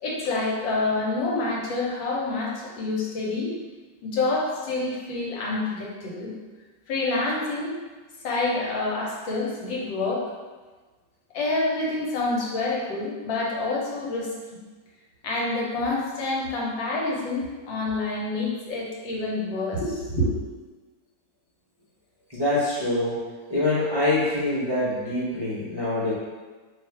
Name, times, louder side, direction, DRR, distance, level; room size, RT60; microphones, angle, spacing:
voice 1, 0.0-3.5 4.0-6.3 6.9-7.8 8.2-10.2 11.3-14.6 15.2-20.4, left 2 dB, 85° left, -3 dB, 1.5 m, -27 dB
voice 2, 22.3-23.2 23.5-26.1, left 2 dB, 40° right, -10 dB, 0.3 m, -25 dB
3.1 x 2.4 x 4.4 m, 1.3 s
omnidirectional pair, 2.0 m